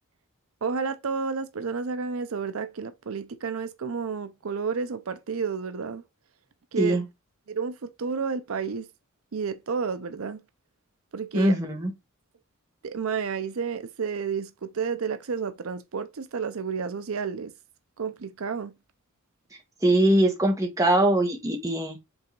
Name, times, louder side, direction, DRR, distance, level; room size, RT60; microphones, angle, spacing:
voice 1, 0.6-6.0 6.7-7.0 7.5-8.9 9.3-10.4 11.1-11.5 12.8-17.5 18.0-18.7, right 5 dB, 75° right, 0.6 m, -31 dB
voice 2, 11.3-11.9 19.8-22.0, right 1 dB, 15° right, 1.6 m, -22 dB
5.5 x 3.9 x 4.6 m
head